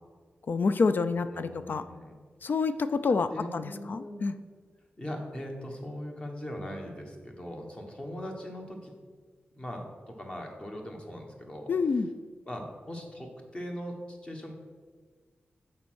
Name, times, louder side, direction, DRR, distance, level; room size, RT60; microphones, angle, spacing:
voice 1, 0.5-1.8 2.4-4.3 11.7-12.1, left 4 dB, 55° left, 11 dB, 0.3 m, -28 dB
voice 2, 1.3-2.1 3.3-4.4 5.0-8.9 9.6-11.7 12.5-14.5, equal, 25° left, 1 dB, 1.3 m, -40 dB
6.9 x 4.3 x 6.2 m, 1.5 s
wide cardioid pair, 95°, 4 cm